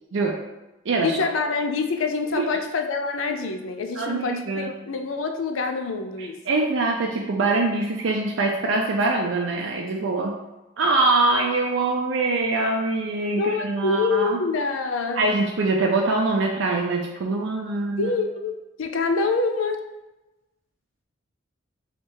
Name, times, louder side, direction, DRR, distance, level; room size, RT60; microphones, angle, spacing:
voice 1, 1.0-6.4 13.3-15.2 18.0-19.8, left 4 dB, 90° left, 6 dB, 0.5 m, -26 dB
voice 2, 4.0-4.7 6.2-10.3 10.8-14.4 15.2-18.1, right 3 dB, 80° right, 0 dB, 0.5 m, -23 dB
3.3 x 3.2 x 4.5 m, 1.0 s
head